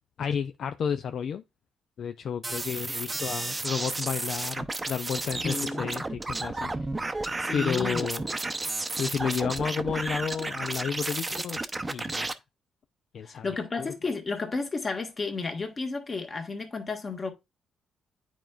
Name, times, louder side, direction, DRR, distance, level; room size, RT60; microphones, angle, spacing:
voice 1, 0.2-1.4 2.0-6.7 7.1-7.2 7.5-8.3 9.0-11.6 11.9-12.3 13.1-13.9, left 7 dB, 60° left, 0.4 m, -32 dB
sound 1, 2.4-12.3, right 2 dB, 20° right, 0.7 m, -32 dB
voice 2, 5.4-5.9 7.4-8.1 13.2-17.3, left 3 dB, 35° left, 1.5 m, -32 dB
9.1 x 4.5 x 2.4 m
cardioid pair, 90°, 0 cm